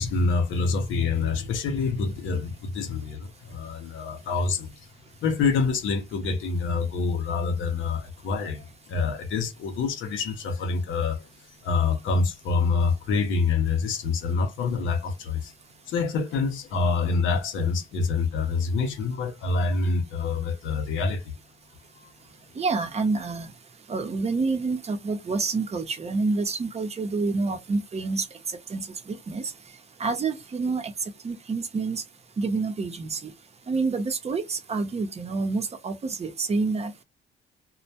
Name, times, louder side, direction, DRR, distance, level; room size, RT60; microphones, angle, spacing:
voice 1, 0.0-4.9 5.2-15.5 15.9-21.3 22.0-22.1, left 4 dB, 75° left, 0.6 m, -26 dB
voice 2, 22.6-23.5 23.9-29.5 30.0-30.9 31.2-32.0 32.4-33.3 33.7-36.9, right 4 dB, 30° right, 0.7 m, -28 dB
2.1 x 2.1 x 2.7 m
cardioid pair, 90°, 20 cm